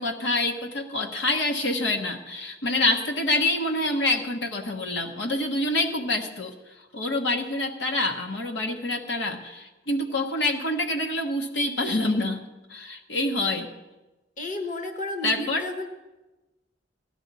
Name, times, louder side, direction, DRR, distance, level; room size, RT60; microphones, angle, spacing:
voice 1, 0.0-6.5 6.9-12.4 12.7-13.7 15.2-15.7, left 2 dB, 70° left, 2 dB, 1.2 m, -26 dB
voice 2, 14.4-15.9, left 1 dB, 45° left, 5 dB, 1.2 m, -32 dB
17.0 x 12.0 x 4.1 m, 1.1 s
head